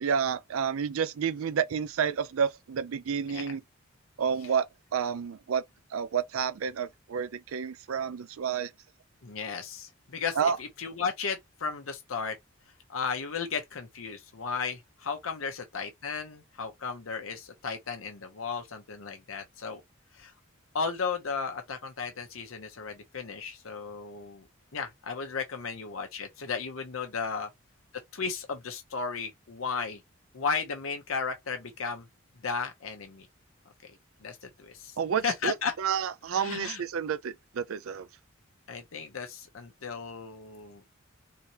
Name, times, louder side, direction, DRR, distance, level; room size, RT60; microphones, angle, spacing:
voice 1, 0.0-3.6 4.2-5.6 5.9-8.7 10.4-10.6 35.0-38.1, right 7 dB, 85° right, 0.4 m, -30 dB
voice 2, 9.2-12.4 12.9-19.8 20.1-20.3 20.7-24.5 24.7-27.5 28.1-30.0 30.3-32.0 32.4-33.3 34.2-35.0 35.2-35.7 36.3-36.8 38.7-40.8, left 5 dB, 80° left, 0.8 m, -35 dB
3.7 x 2.8 x 2.9 m
head